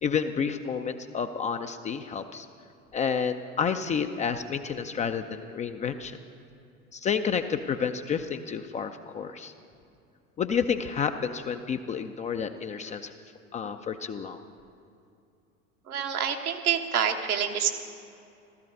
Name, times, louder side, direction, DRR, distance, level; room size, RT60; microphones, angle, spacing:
voice 1, 0.0-2.5 2.9-6.2 6.9-9.5 10.4-13.1 13.5-14.4, left 6 dB, 15° left, 8 dB, 0.4 m, -30 dB
voice 2, 15.9-17.7, right 8 dB, 75° right, 3 dB, 1.3 m, -27 dB
15.5 x 14.0 x 5.4 m, 2.6 s
figure-of-eight pair, 75°, 44 cm